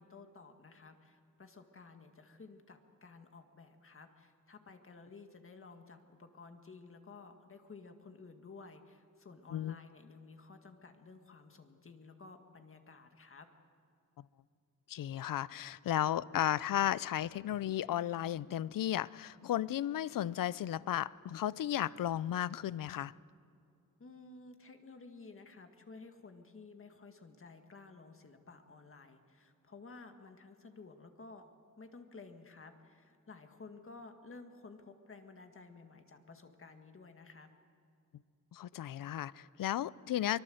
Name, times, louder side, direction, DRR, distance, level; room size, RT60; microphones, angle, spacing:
voice 1, 0.0-13.5 24.0-37.5, left 4 dB, 40° left, 1.9 m, -54 dB
voice 2, 14.9-23.1 38.5-40.4, left 12 dB, 85° left, 0.6 m, -34 dB
24.0 x 23.0 x 7.8 m
wide cardioid pair, 120°, 32 cm